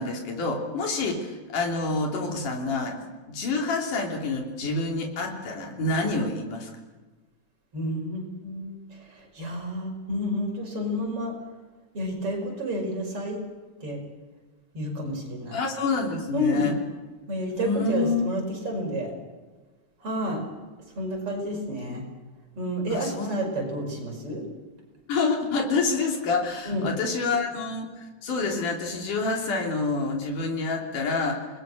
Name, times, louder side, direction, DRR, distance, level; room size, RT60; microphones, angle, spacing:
voice 1, 0.0-3.0 3.3-6.7 15.5-16.8 17.5-18.3 22.9-23.3 23.6-24.0 25.1-31.5, left 3 dB, 85° left, 1 dB, 4.7 m, -27 dB
voice 2, 7.7-11.3 11.9-13.4 13.8-14.0 14.7-15.6 16.3-16.7 17.3-19.1 20.0-20.4 21.0-22.0 22.6-24.4 26.6-26.9, equal, 45° right, 0 dB, 6.0 m, -30 dB
29.0 x 19.5 x 6.5 m, 1.3 s
omnidirectional pair, 3.5 m